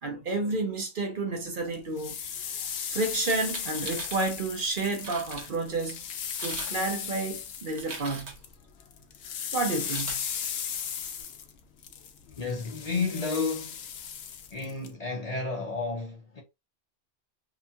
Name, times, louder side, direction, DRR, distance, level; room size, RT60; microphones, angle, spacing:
voice 1, 0.0-2.2 2.9-6.0 6.4-8.4 9.5-10.3, right 3 dB, 55° right, 0.9 m, -30 dB
sound 1, 1.7-8.5 8.8-14.9, left 8 dB, 75° left, 0.8 m, -37 dB
sound 2, 3.1-4.2 4.8-4.9 5.0-5.5 6.2-6.8 7.0-8.5 9.7-10.2, right 3 dB, 75° right, 1.3 m, -40 dB
voice 2, 12.3-13.8 14.5-16.4, left 4 dB, 40° left, 0.8 m, -31 dB
2.9 x 2.3 x 2.7 m
omnidirectional pair, 1.1 m